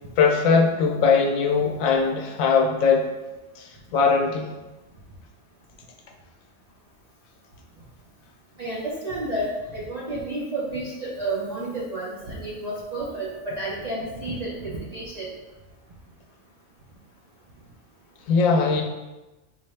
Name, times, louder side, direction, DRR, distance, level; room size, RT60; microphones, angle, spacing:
voice 1, 0.2-3.0 3.6-4.5 18.3-18.8, left 5 dB, 80° left, 2 dB, 1.0 m, -20 dB
voice 2, 8.6-15.3, right 2 dB, 45° right, -7 dB, 0.5 m, -31 dB
4.3 x 2.4 x 3.2 m, 1.1 s
omnidirectional pair, 1.4 m